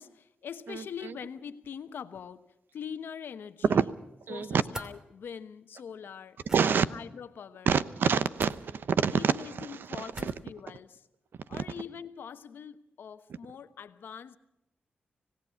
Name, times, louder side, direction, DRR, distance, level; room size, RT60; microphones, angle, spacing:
voice 1, 0.0-2.4 2.7-3.9 4.3-7.7 9.1-11.1 11.5-14.4, left 7 dB, 85° left, 1.1 m, -43 dB
voice 2, 0.7-1.1 3.7-3.9 4.3-4.6 6.5-6.8 7.7-9.3 9.6-10.3 11.5-11.6, right 6 dB, 75° right, 0.9 m, -27 dB
sound 1, 4.7-4.9 6.4-6.6 8.4-8.6 10.1-10.4, equal, 15° right, 2.6 m, -41 dB
25.5 x 17.5 x 5.8 m
cardioid pair, 80°, 4 cm